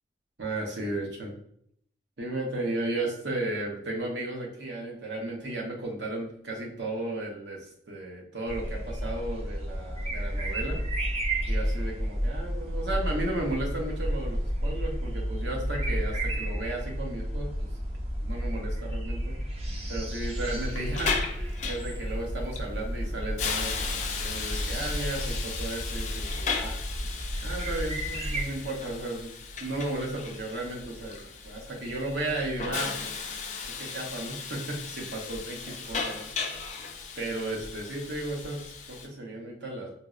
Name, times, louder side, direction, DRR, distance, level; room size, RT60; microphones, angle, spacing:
voice 1, 0.4-1.3 2.2-10.8 11.5-17.7 18.2-19.4 19.9-21.1 21.4-26.8 27.4-29.3 29.6-33.2 33.8-36.3 37.2-39.9, right 2 dB, 70° right, 0 dB, 0.8 m, -34 dB
sound 1, 8.5-28.4, equal, 35° right, 0.5 m, -32 dB
Hiss, 20.5-39.1, left 5 dB, 40° left, 0.3 m, -36 dB
4.2 x 2.0 x 2.4 m, 0.69 s
head